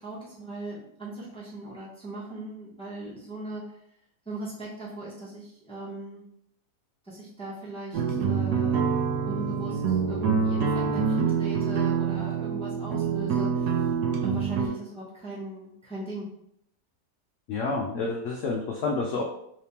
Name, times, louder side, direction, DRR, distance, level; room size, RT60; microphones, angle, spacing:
voice 1, 0.0-3.8 4.2-6.3 7.0-8.9 9.2-13.9 14.2-16.3, right 2 dB, 5° left, -7 dB, 0.5 m, -39 dB
sound 1, 7.9-14.7, right 6 dB, 75° right, 1.1 m, -26 dB
voice 2, 17.5-19.2, left 3 dB, 80° left, -1 dB, 0.6 m, -29 dB
3.4 x 3.2 x 2.8 m, 0.74 s
omnidirectional pair, 1.8 m